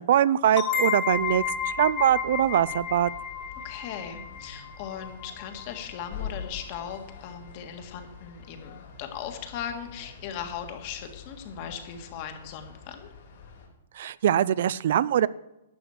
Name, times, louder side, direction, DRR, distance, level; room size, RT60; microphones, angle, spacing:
voice 1, 0.0-1.4 1.8-3.1 14.0-15.3, right 10 dB, 60° right, 19 dB, 0.4 m, -22 dB
sound 1, 0.6-6.0, left 7 dB, 20° left, 1.6 m, -32 dB
sound 2, 1.1-13.7, left 7 dB, 60° left, 3.9 m, -45 dB
voice 2, 3.6-13.1, left 8 dB, 40° left, 6 dB, 1.8 m, -38 dB
11.5 x 6.1 x 7.9 m, 0.93 s
hypercardioid pair, 160°, 0 cm